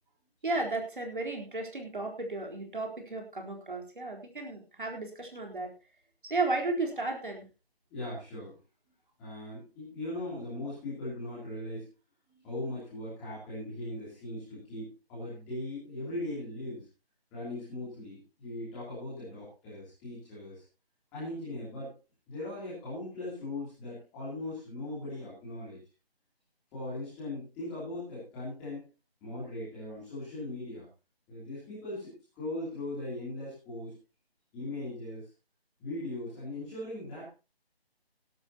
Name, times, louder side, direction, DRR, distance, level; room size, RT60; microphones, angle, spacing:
voice 1, 0.4-5.7 6.3-7.5, right 2 dB, 55° right, 1 dB, 4.0 m, -34 dB
voice 2, 7.9-8.5 9.2-11.9 12.3-16.9 17.3-20.6 21.1-21.9 22.3-25.8 26.7-28.8 29.2-30.9 31.3-34.0 34.5-35.2 35.8-37.3, left 1 dB, 5° left, -11 dB, 2.9 m, -39 dB
18.5 x 12.0 x 2.9 m, 0.31 s
figure-of-eight pair, 180°, 31 cm